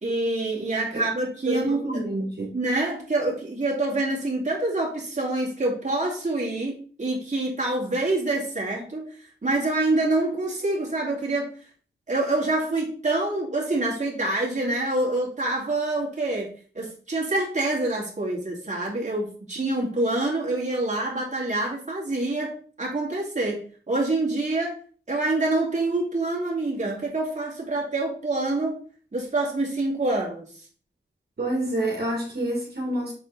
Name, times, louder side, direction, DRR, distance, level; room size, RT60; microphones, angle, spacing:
voice 1, 0.0-1.8 2.5-9.1 9.4-11.5 12.1-16.5 16.7-24.7 25.1-28.8 29.1-30.4, right 2 dB, 40° right, -3 dB, 2.7 m, -26 dB
voice 2, 1.5-2.5 31.4-33.1, right 1 dB, 55° right, -2 dB, 2.6 m, -28 dB
7.1 x 4.3 x 4.2 m, 0.41 s
wide cardioid pair, 65°, 19 cm